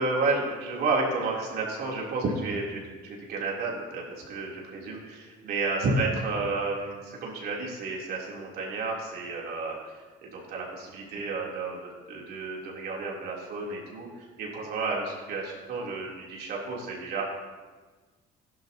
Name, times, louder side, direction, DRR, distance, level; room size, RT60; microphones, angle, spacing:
voice 1, 0.0-17.2, right 3 dB, 70° right, -3 dB, 3.5 m, -31 dB
15.0 x 11.0 x 2.9 m, 1.4 s
cardioid pair, 110°, 17 cm